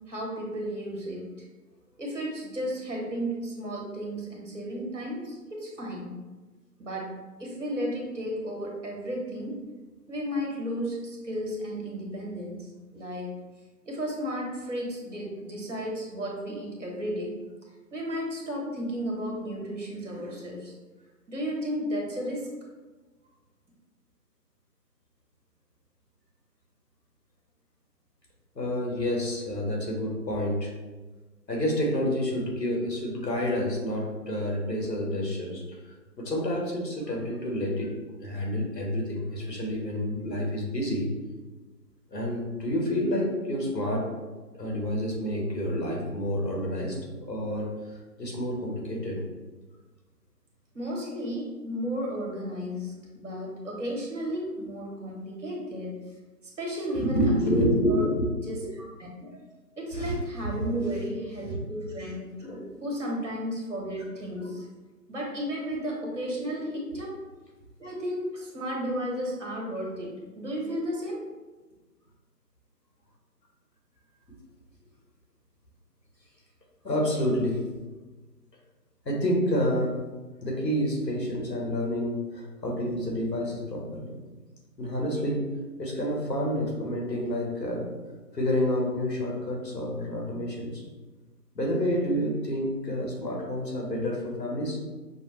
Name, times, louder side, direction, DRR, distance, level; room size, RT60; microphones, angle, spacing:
voice 1, 0.1-1.3 2.0-6.2 6.8-9.6 10.1-13.3 13.8-17.3 17.9-20.7 21.3-22.5 50.7-56.0 56.6-58.1 58.5-59.4 59.8-64.7 65.1-67.2 67.8-71.2, equal, 50° right, -2 dB, 1.2 m, -33 dB
voice 2, 28.5-30.7 31.5-35.8 36.2-41.1 42.1-44.1 44.5-49.2 56.9-58.3 59.9-60.2 61.4-61.6 76.8-77.6 79.0-79.9 80.4-84.2 84.8-85.4 85.8-87.8 88.3-90.8 91.5-94.8, equal, 85° left, -1 dB, 1.4 m, -29 dB
5.6 x 2.2 x 3.1 m, 1.2 s
figure-of-eight pair, 155°, 48 cm